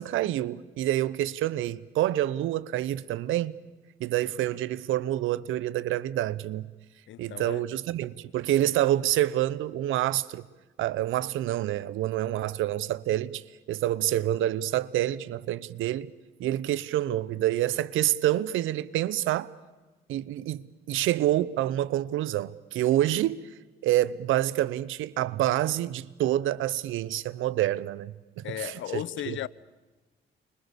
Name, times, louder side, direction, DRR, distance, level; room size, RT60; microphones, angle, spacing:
voice 1, 0.0-3.5 4.0-6.7 7.2-10.4 10.8-13.4 13.7-16.1 16.4-19.5 20.1-23.4 23.8-29.4, right 13 dB, 85° right, 0.9 m, -27 dB
voice 2, 7.1-7.6 28.4-29.5, left 13 dB, 75° left, 0.8 m, -35 dB
29.5 x 25.5 x 7.0 m
cardioid pair, 90°, 20 cm